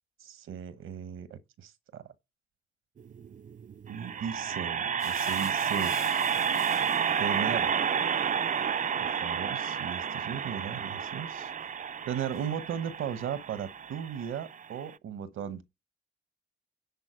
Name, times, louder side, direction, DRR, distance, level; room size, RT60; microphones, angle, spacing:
voice 1, 0.2-2.0 3.9-6.0 7.2-7.7 8.8-11.5 12.0-15.6, right 8 dB, 85° right, 1.0 m, -36 dB
sound 1, 3.0-14.8, right 7 dB, 40° right, 0.4 m, -31 dB
sound 2, 5.0-13.0 13.2-14.4, left 4 dB, 85° left, 2.6 m, -50 dB
10.5 x 4.0 x 6.2 m
supercardioid pair, 45°, 20 cm